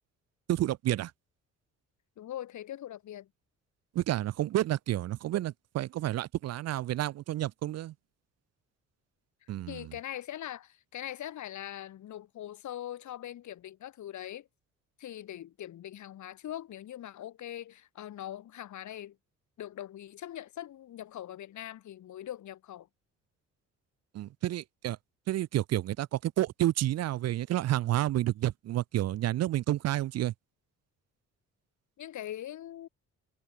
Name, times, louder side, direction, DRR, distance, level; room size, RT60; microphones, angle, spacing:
voice 1, 0.5-1.1 3.9-7.9 9.5-9.9 24.1-25.0 25.3-30.3, right 14 dB, 55° right, 0.5 m, -30 dB
voice 2, 2.2-3.3 9.7-14.5 15.0-19.2 19.6-22.9 32.0-32.9, left 12 dB, 70° left, 2.9 m, -42 dB
cardioid pair, 90°, 30 cm